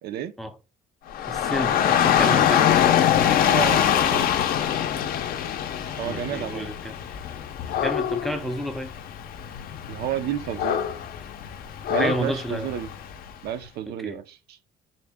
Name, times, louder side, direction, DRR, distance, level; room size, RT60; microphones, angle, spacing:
voice 1, 0.0-0.3 3.5-4.3 6.0-6.7 9.9-10.8 11.9-12.9 13.4-14.6, right 10 dB, 70° right, 0.4 m, -31 dB
Dog / Rain, 1.1-13.3, left 9 dB, 60° left, 0.5 m, -24 dB
voice 2, 1.3-2.7 6.0-6.9 7.8-8.9 11.9-12.7 14.0-14.2, equal, ahead, 0.4 m, -30 dB
3.8 x 2.1 x 3.4 m
cardioid pair, 110°, 17 cm